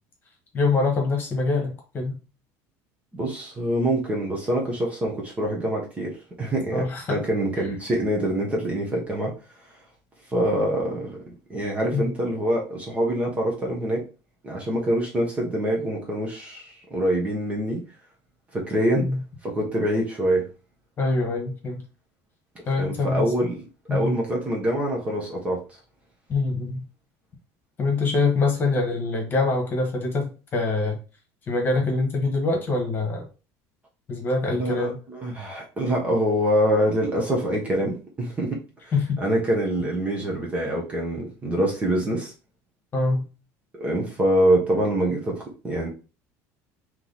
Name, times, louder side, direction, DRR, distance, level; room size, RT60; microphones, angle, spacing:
voice 1, 0.5-2.2 6.7-7.2 11.9-12.1 18.9-19.2 21.0-21.8 22.7-23.2 23.9-24.2 26.3-26.8 27.8-31.0 31.5-33.3 34.1-35.0 38.9-39.1 42.9-43.3, left 3 dB, 30° left, 1 dB, 1.4 m, -24 dB
voice 2, 3.1-6.8 7.1-9.3 10.3-14.0 14.4-17.8 18.5-19.1 19.4-20.5 22.7-25.6 34.6-38.6 38.8-38.9 39.2-42.3 43.7-45.9, right 1 dB, 20° right, -1 dB, 1.1 m, -25 dB
3.7 x 3.1 x 3.9 m, 0.33 s
cardioid pair, 155°, 8 cm